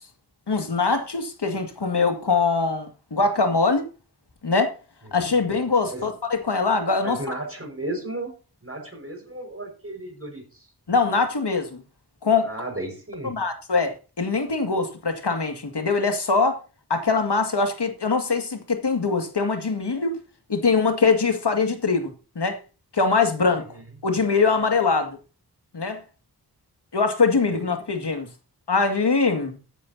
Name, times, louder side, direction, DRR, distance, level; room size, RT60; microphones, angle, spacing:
voice 1, 0.5-3.8 4.4-4.7 5.1-7.2 10.9-11.8 12.2-12.5 13.2-16.6 16.9-20.2 20.5-22.6 22.9-23.6 24.0-25.2 25.7-26.0 26.9-28.3 28.7-29.6, left 4 dB, 85° left, 2.2 m, -22 dB
voice 2, 7.0-8.3 8.6-10.7 12.4-13.4 23.7-23.8 27.5-27.6, right 1 dB, 35° right, 5.3 m, -34 dB
14.5 x 10.0 x 2.8 m
wide cardioid pair, 55°, 40 cm